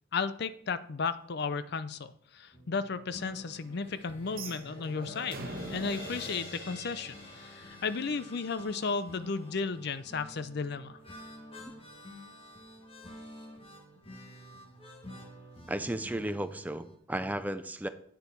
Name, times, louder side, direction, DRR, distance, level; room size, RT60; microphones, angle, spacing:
voice 1, 0.1-11.0, left 4 dB, 60° left, 13 dB, 0.6 m, -34 dB
sound 1, 2.5-17.0, left 1 dB, 30° left, 1.7 m, -50 dB
sound 2, 3.6-9.8, left 2 dB, 80° left, 3.8 m, -47 dB
sound 3, 4.3-7.4, right 2 dB, 50° right, 1.2 m, -44 dB
voice 2, 15.7-17.9, right 1 dB, 10° right, 10 dB, 0.4 m, -34 dB
9.3 x 6.8 x 4.6 m, 0.64 s
head